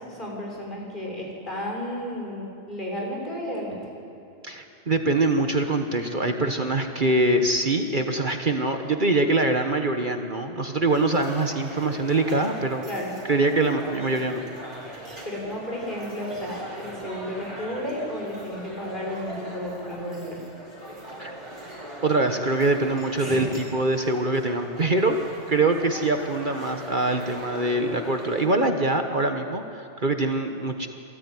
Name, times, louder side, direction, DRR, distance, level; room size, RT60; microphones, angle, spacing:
voice 1, 0.1-3.8 12.9-13.1 14.8-20.4 23.2-23.5, equal, 40° left, -2 dB, 6.4 m, -33 dB
voice 2, 4.4-12.8 13.3-14.4 21.2-21.3 22.0-25.2 25.5-30.9, right 2 dB, 45° right, 5 dB, 1.4 m, -24 dB
sound 1, 10.9-28.5, right 1 dB, 25° right, 5.2 m, -40 dB
27.5 x 19.5 x 9.8 m, 2.8 s
omnidirectional pair, 1.2 m